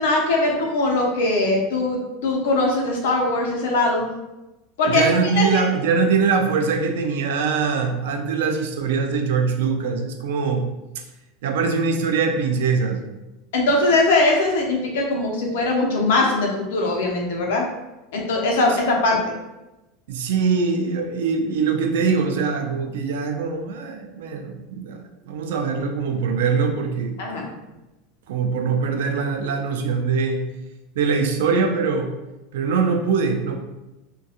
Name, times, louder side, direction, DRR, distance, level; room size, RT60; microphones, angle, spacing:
voice 1, 0.0-4.1 4.8-5.6 13.5-17.6 18.1-19.2 27.2-27.5, left 2 dB, 85° left, 0 dB, 0.6 m, -21 dB
voice 2, 4.9-10.7 11.4-13.0 20.1-25.0 25.3-27.2 28.3-30.5 31.0-32.1 32.5-33.6, right 5 dB, 85° right, 5 dB, 0.4 m, -22 dB
2.7 x 2.3 x 2.4 m, 1.0 s
supercardioid pair, 145°, 0 cm